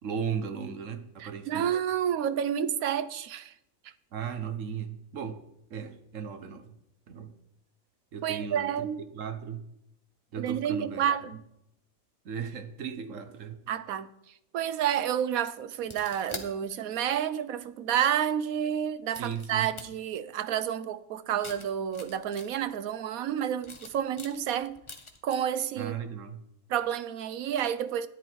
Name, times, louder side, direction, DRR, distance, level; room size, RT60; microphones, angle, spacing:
voice 1, 0.0-1.8 4.1-5.4 5.7-6.6 7.1-7.3 8.1-8.9 9.1-9.6 10.3-11.1 12.2-13.6 19.2-19.7 25.8-26.4, right 7 dB, 65° right, 1.4 m, -36 dB
voice 2, 1.2-3.5 8.2-9.0 10.4-11.4 13.7-14.1 14.5-24.8 25.2-25.9 26.7-28.1, right 9 dB, 90° right, 1.1 m, -30 dB
sound 1, 15.8-16.5 17.6-17.7 19.1-19.8 21.4-22.8 23.5-25.3, left 2 dB, 20° left, 1.2 m, -44 dB
13.5 x 10.5 x 4.6 m
omnidirectional pair, 1.4 m